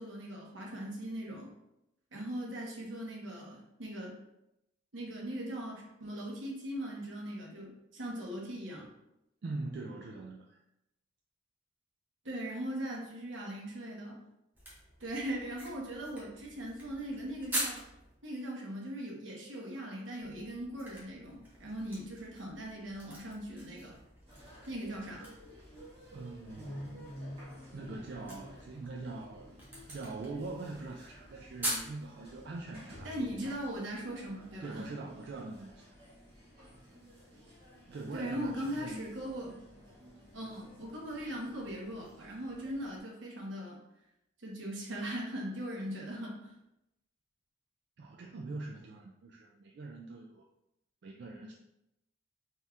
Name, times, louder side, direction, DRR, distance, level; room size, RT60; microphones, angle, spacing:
voice 1, 0.0-1.5 2.1-4.1 4.9-8.9 12.2-14.2 15.0-17.8 18.2-24.0 24.7-25.3 33.0-34.9 38.1-39.6 40.3-43.8 44.4-46.5, right 1 dB, 80° right, -2 dB, 1.1 m, -40 dB
voice 2, 9.4-10.6 26.1-27.1 27.7-29.6 29.9-33.5 34.6-35.9 37.9-39.0 48.0-50.5 51.0-51.5, right 3 dB, 60° right, 0 dB, 0.3 m, -43 dB
sound 1, 14.5-18.1 20.2-31.9, right 1 dB, 10° right, 1.1 m, -44 dB
sound 2, 24.3-43.0, equal, 30° right, 1.4 m, -52 dB
4.3 x 3.6 x 2.4 m, 0.86 s
head